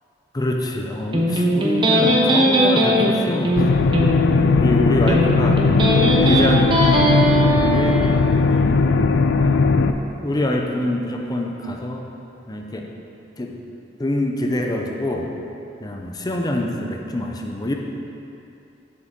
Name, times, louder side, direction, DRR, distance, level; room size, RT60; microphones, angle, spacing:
voice 1, 0.3-3.8 4.3-5.6 6.0-7.1 7.6-8.1 8.4-9.8 10.2-12.0 12.5-12.9 13.4-13.6 14.0-15.3 15.8-17.7, left 1 dB, 20° left, 1 dB, 0.6 m, -25 dB
Electric guitar, 1.1-8.1, equal, 25° right, 0.8 m, -19 dB
sound 1, 3.6-9.9, left 4 dB, 65° left, 0.4 m, -18 dB
7.5 x 6.6 x 3.7 m, 2.8 s
head